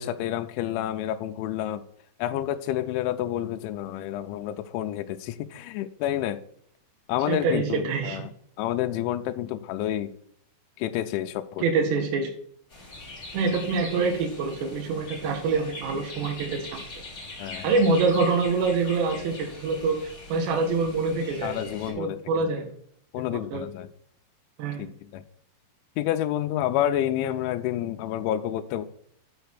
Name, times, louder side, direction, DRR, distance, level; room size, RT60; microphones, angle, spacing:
voice 1, 0.0-1.8 2.2-6.4 7.1-8.3 8.6-10.1 10.8-11.7 17.4-17.7 21.4-22.4 23.1-23.9 24.8-25.2 26.0-28.9, left 12 dB, 85° left, 8 dB, 2.9 m, -29 dB
voice 2, 7.3-8.2 11.6-12.3 13.3-16.8 17.6-21.6 22.0-22.7 23.3-23.7 24.6-24.9, right 4 dB, 75° right, 2 dB, 3.1 m, -25 dB
sound 1, 12.7-21.9, left 2 dB, 20° left, 2.6 m, -42 dB
7.3 x 5.7 x 6.1 m, 0.63 s
omnidirectional pair, 5.4 m